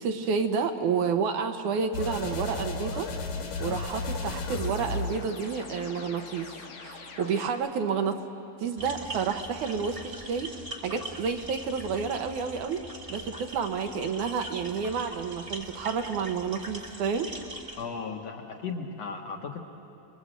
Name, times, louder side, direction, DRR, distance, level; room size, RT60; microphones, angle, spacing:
voice 1, 0.0-3.1 3.6-6.5 6.8-8.2 8.6-10.5 10.8-12.8 13.1-17.3, right 6 dB, 70° right, 6 dB, 2.3 m, -30 dB
sound 1, 1.9-7.5, left 3 dB, 80° left, 3.7 m, -35 dB
sound 2, 8.8-17.8, right 1 dB, 20° right, 0.8 m, -42 dB
voice 2, 17.8-19.6, left 5 dB, 60° left, 2 dB, 2.1 m, -36 dB
28.5 x 21.5 x 8.0 m, 2.7 s
omnidirectional pair, 3.9 m